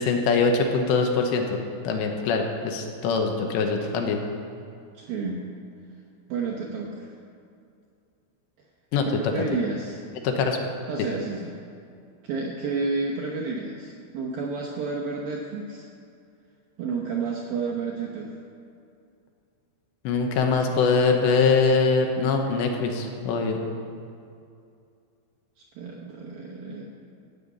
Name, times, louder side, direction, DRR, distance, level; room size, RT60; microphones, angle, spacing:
voice 1, 0.0-1.6 1.8-4.2 8.9-9.1 9.4-9.5 10.2-10.6 20.0-23.6, left 4 dB, 75° left, 3 dB, 3.0 m, -23 dB
voice 2, 4.9-5.5 6.3-7.1 9.1-10.0 10.9-11.6 12.2-15.9 16.8-18.4 25.6-26.9, right 4 dB, 80° right, -3 dB, 2.1 m, -31 dB
16.0 x 5.8 x 8.4 m, 2.4 s
omnidirectional pair, 5.7 m